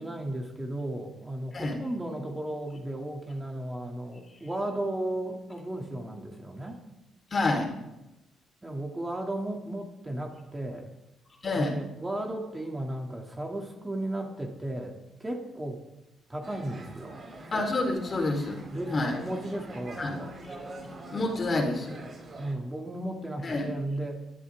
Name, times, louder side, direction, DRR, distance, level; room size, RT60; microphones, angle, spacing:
voice 1, 0.0-6.8 8.6-11.0 11.5-15.8 16.3-17.2 18.7-20.3 22.4-24.2, right 1 dB, 15° right, 1 dB, 2.6 m, -35 dB
voice 2, 7.3-7.7 11.4-11.8 17.5-18.6 18.9-19.1 20.0-20.2 21.1-22.0 23.4-23.7, left 2 dB, 40° left, 1 dB, 3.9 m, -28 dB
sound 1, 16.4-22.5, right 2 dB, 40° right, 7.0 m, -44 dB
24.0 x 12.0 x 3.7 m, 0.93 s
cardioid pair, 90°, 0 cm